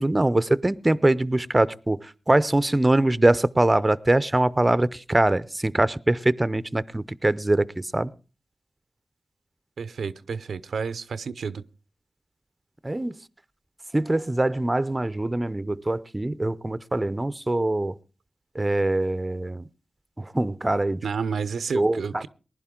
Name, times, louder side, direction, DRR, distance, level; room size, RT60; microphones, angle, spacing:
voice 1, 0.0-8.1 12.8-13.2 13.9-17.9 18.6-19.6 20.2-21.0 21.7-22.3, right 2 dB, 25° right, 0.6 m, -23 dB
voice 2, 9.8-11.6 21.0-22.3, right 5 dB, 85° right, 0.6 m, -30 dB
19.5 x 11.0 x 3.7 m
cardioid pair, 55°, 0 cm